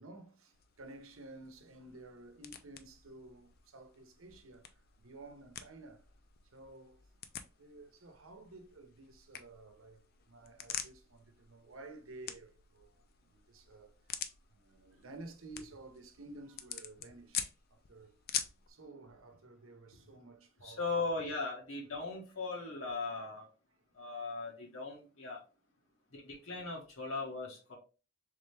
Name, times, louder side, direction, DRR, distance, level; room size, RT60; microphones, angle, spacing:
voice 1, 0.0-4.7 5.0-6.1 6.5-7.0 7.6-10.0 10.3-13.0 13.3-14.0 14.5-18.2 18.7-20.8, right 2 dB, 85° right, 0.8 m, -53 dB
sound 1, 0.5-18.7, left 9 dB, 50° left, 0.4 m, -47 dB
voice 2, 20.6-23.5 23.9-25.4 26.1-27.8, left 3 dB, 80° left, 1.3 m, -38 dB
3.6 x 3.3 x 3.3 m
head